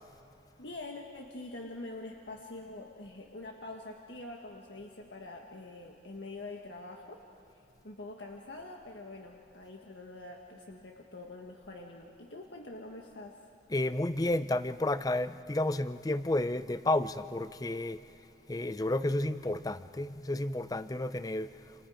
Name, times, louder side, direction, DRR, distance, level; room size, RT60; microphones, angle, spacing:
voice 1, 0.6-7.2 7.8-13.4, left 2 dB, 75° left, 1.7 m, -45 dB
voice 2, 13.7-18.0 18.5-21.5, left 1 dB, 20° left, 0.5 m, -31 dB
29.0 x 28.5 x 5.1 m
head